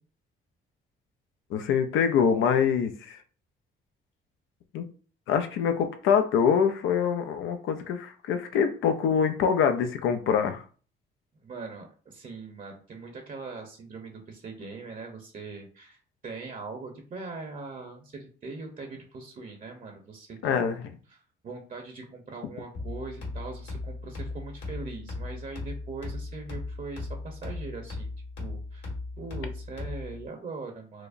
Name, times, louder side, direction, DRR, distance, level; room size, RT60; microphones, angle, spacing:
voice 1, 1.5-3.2 4.7-4.8 5.3-10.6 20.4-20.9, left 7 dB, 90° left, 7 dB, 0.5 m, -25 dB
voice 2, 11.4-20.8 21.1-28.1 28.4-28.9 29.2-31.1, right 3 dB, 40° right, 3 dB, 0.7 m, -41 dB
sound 1, 22.7-30.3, left 2 dB, 70° left, 1.7 m, -37 dB
4.7 x 2.0 x 2.5 m, 0.40 s
cardioid pair, 90°, 20 cm